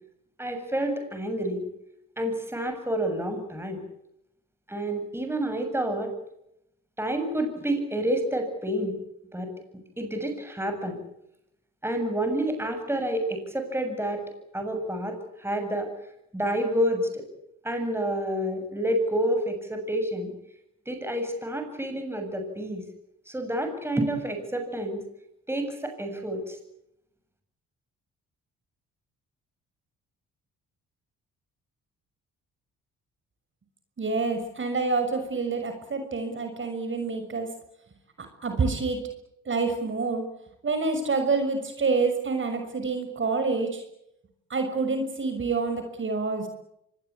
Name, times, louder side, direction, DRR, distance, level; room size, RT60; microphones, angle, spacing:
voice 1, 0.4-1.7 2.2-3.8 4.7-6.1 7.0-9.0 9.3-9.5 10.0-11.0 11.8-14.2 14.5-15.9 16.3-17.2 17.6-20.3 20.9-22.8 23.3-25.0 25.5-26.6, right 1 dB, 10° right, 6 dB, 7.4 m, -29 dB
voice 2, 34.0-37.5 38.4-39.0 39.5-40.2 40.6-43.8 44.5-46.5, right 4 dB, 40° right, 6 dB, 6.3 m, -27 dB
25.0 x 21.5 x 8.6 m, 0.80 s
cardioid pair, 90°, 30 cm